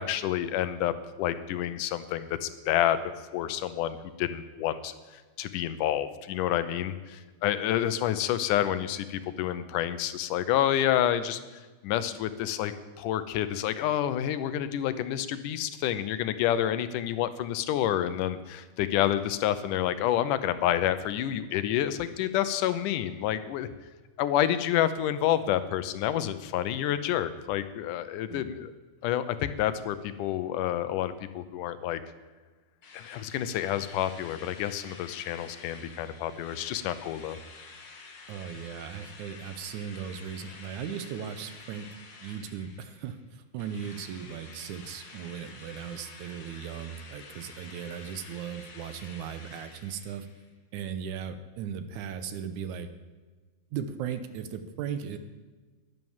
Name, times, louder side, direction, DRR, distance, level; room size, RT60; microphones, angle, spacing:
voice 1, 0.0-3.0 3.3-11.4 11.8-23.7 24.2-28.7 29.0-32.0 32.9-37.4, left 11 dB, 85° left, 12 dB, 2.3 m, -29 dB
Drill, 32.8-43.2 43.6-50.5, left 4 dB, 45° left, 1.6 m, -49 dB
voice 2, 38.3-41.9 42.2-50.3 50.7-52.9 53.7-55.2, right 8 dB, 75° right, 10 dB, 2.2 m, -37 dB
11.0 x 10.5 x 7.2 m, 1.3 s
omnidirectional pair, 3.6 m